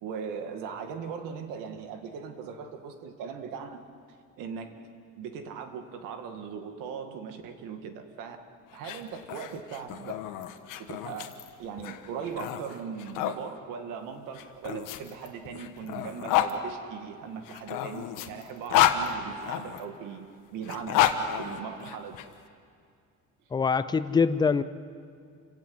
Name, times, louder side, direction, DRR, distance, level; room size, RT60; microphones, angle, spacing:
voice 1, 0.0-3.8 4.4-4.8 5.2-8.4 8.7-10.2 10.8-21.0 21.4-22.2, right 6 dB, 90° right, 6 dB, 2.1 m, -39 dB
sound 1, 8.7-13.4 14.3-16.5 17.4-19.8 20.6-22.2, left 11 dB, 85° left, 1.5 m, -29 dB
voice 2, 23.5-24.6, left 5 dB, 15° left, 13 dB, 0.5 m, -24 dB
28.0 x 17.0 x 7.9 m, 2.3 s
cardioid pair, 160°, 31 cm